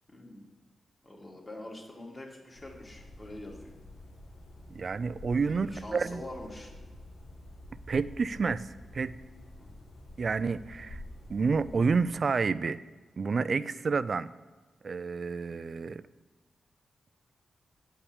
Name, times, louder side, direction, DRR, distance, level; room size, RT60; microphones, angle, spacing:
voice 1, 0.1-0.4 1.0-3.7 5.5-6.7 9.6-9.7, left 1 dB, 30° left, -1 dB, 2.6 m, -44 dB
sound 1, 2.5-12.0, left 1 dB, 70° left, 1.5 m, -49 dB
voice 2, 4.7-6.2 7.9-8.7 8.9-9.1 10.2-11.0 11.3-12.8 13.2-14.3 14.8-16.0, right 4 dB, 55° right, 15 dB, 0.4 m, -29 dB
8.5 x 5.7 x 8.0 m, 1.4 s
cardioid pair, 75°, 0 cm